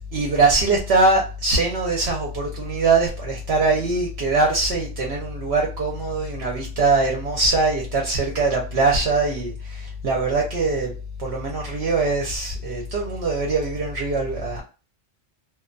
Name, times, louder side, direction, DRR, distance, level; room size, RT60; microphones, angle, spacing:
voice 1, 0.1-10.9 11.2-14.6, right 3 dB, 65° right, 0.9 m, -22 dB
2.5 x 2.1 x 2.4 m
omnidirectional pair, 1.2 m